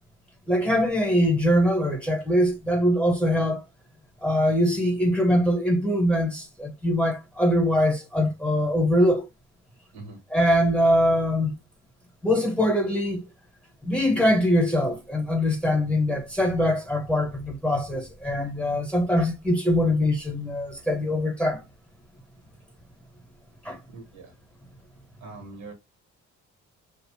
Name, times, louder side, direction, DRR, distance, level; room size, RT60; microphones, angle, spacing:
voice 1, 0.5-3.6 4.2-9.3 10.3-11.5 12.2-13.2 13.8-21.6 23.6-23.8, equal, 5° left, 0.9 m, -23 dB
voice 2, 23.9-24.3 25.2-25.7, right 3 dB, 70° right, 1.1 m, -42 dB
2.6 x 2.0 x 3.1 m
cardioid pair, 90°, 30 cm